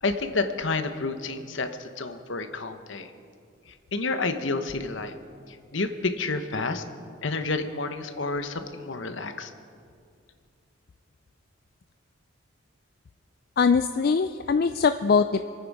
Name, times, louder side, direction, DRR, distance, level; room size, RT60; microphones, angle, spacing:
voice 1, 0.0-3.1 3.9-5.2 5.5-6.8 7.2-9.5, left 3 dB, 70° left, 8 dB, 1.0 m, -30 dB
voice 2, 13.6-15.5, left 5 dB, 50° left, 9 dB, 0.4 m, -22 dB
26.5 x 9.6 x 4.8 m, 2.3 s
head